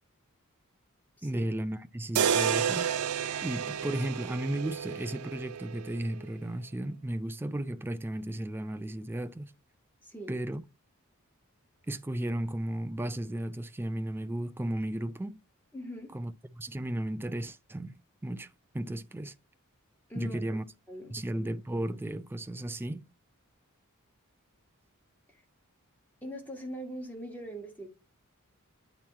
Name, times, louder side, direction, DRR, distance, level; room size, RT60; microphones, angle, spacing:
voice 1, 1.2-2.9 3.4-9.5 10.3-10.6 11.9-15.4 16.1-18.0 18.2-18.5 18.7-19.3 20.2-20.6 21.1-23.0, right 1 dB, 10° right, 0.3 m, -34 dB
sound 1, 2.2-6.2, right 8 dB, 80° right, 0.5 m, -31 dB
voice 2, 15.7-16.1 20.1-20.4 20.9-21.1 25.3-25.4 26.2-27.9, equal, 10° left, 1.6 m, -41 dB
8.8 x 3.0 x 4.2 m
head